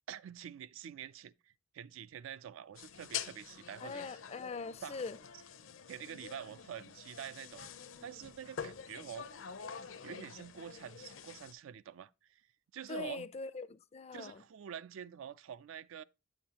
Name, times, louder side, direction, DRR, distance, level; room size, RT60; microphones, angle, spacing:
voice 1, 0.1-4.1 4.8-5.0 5.9-7.6 8.0-9.3 10.0-12.5 12.7-13.3 14.1-16.0, right 8 dB, 75° right, 0.3 m, -47 dB
sound 1, 2.7-11.5, left 7 dB, 75° left, 0.7 m, -46 dB
voice 2, 3.8-5.2 12.9-14.4, left 4 dB, 30° left, 0.3 m, -42 dB
8.5 x 7.2 x 2.8 m
head